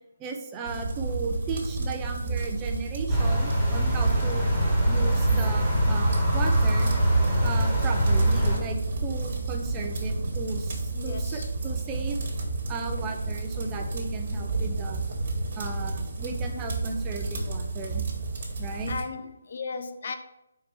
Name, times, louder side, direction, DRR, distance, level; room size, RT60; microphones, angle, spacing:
voice 1, 0.2-4.5 4.9-6.9 7.4-12.2 12.7-15.0 15.5-18.1 18.6-18.9, right 3 dB, 15° right, 2 dB, 0.6 m, -35 dB
sound 1, 0.7-19.0, right 3 dB, 50° right, 1.6 m, -31 dB
sound 2, 3.1-8.6, right 1 dB, 5° left, 1.6 m, -23 dB
voice 2, 10.9-11.5 18.9-20.2, left 4 dB, 55° left, 7 dB, 0.6 m, -35 dB
5.0 x 4.5 x 4.5 m, 0.87 s
hypercardioid pair, 160°, 0 cm